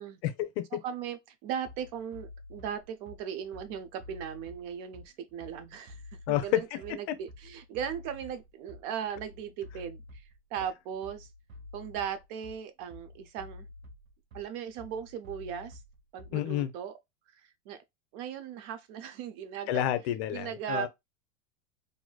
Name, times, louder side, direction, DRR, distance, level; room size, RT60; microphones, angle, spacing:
voice 1, 0.2-0.8 6.3-6.6 7.1-7.2 16.3-16.7 19.7-20.9, left 12 dB, 55° left, 0.7 m, -29 dB
voice 2, 0.8-6.0 6.3-11.3 11.7-13.7 14.3-15.8 16.1-17.0 17.3-17.8 18.1-19.8 20.3-20.9, right 8 dB, 40° right, 0.4 m, -38 dB
Bass drum, 1.6-16.6, left 2 dB, 85° right, 1.0 m, -50 dB
3.1 x 2.6 x 2.2 m
hypercardioid pair, 110°, 40 cm